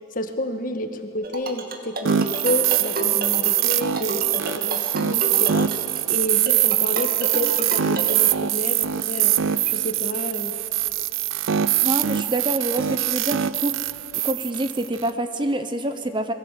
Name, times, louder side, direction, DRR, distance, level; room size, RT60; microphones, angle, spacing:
voice 1, 0.1-5.7 6.1-9.3 9.7-10.5, left 1 dB, 45° left, 6 dB, 1.8 m, -30 dB
sound 1, 1.2-8.1, right 2 dB, 45° right, 2.3 m, -32 dB
sound 2, 2.1-15.1, right 12 dB, 80° right, 0.5 m, -23 dB
voice 2, 11.8-13.8 14.1-16.3, right 1 dB, 25° right, 9 dB, 1.0 m, -26 dB
28.0 x 22.0 x 8.4 m, 2.8 s
head